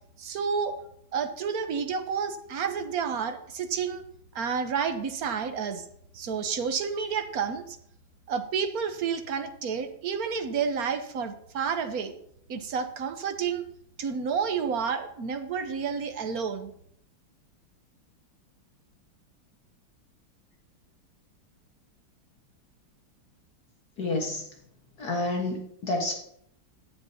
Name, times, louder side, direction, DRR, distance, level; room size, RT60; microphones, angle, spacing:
voice 1, 0.2-0.7 1.1-4.0 4.3-5.8 6.1-7.6 8.3-12.1 12.5-13.6 14.0-16.7, right 6 dB, 55° right, 8 dB, 1.2 m, -30 dB
voice 2, 24.0-24.4 25.0-26.1, left 2 dB, 50° left, 1 dB, 2.0 m, -29 dB
16.0 x 10.5 x 2.8 m, 0.69 s
omnidirectional pair, 2.3 m